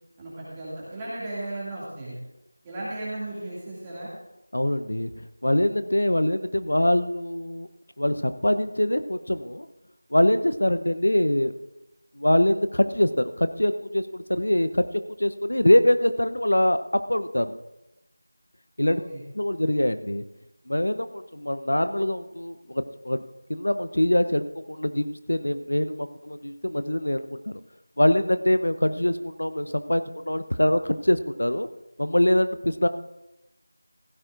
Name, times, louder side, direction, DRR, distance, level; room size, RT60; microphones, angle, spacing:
voice 1, 0.2-2.2 2.6-4.1 18.9-19.2, right 1 dB, 10° right, -9 dB, 2.4 m, -35 dB
voice 2, 4.5-5.1 5.4-7.7 8.0-9.7 10.1-11.5 12.1-14.8 15.2-17.5 18.8-19.0 19.3-20.2 20.7-23.2 23.5-27.6 28.0-31.7 32.0-32.9, left 1 dB, 85° left, 11 dB, 0.8 m, -23 dB
15.5 x 14.0 x 2.6 m, 0.94 s
figure-of-eight pair, 175°, 0 cm